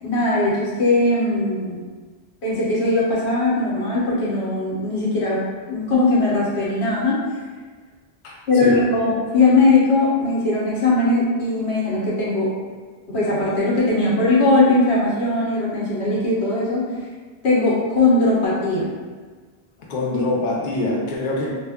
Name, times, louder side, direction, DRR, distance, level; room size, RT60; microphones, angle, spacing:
voice 1, 0.0-1.8 2.4-5.4 5.7-7.2 8.5-12.5 13.1-16.9 17.4-18.9, left 2 dB, 90° left, -7 dB, 1.1 m, -19 dB
voice 2, 8.2-8.8 19.9-21.5, left 2 dB, 60° left, -3 dB, 0.6 m, -24 dB
2.2 x 2.1 x 3.3 m, 1.4 s
omnidirectional pair, 1.1 m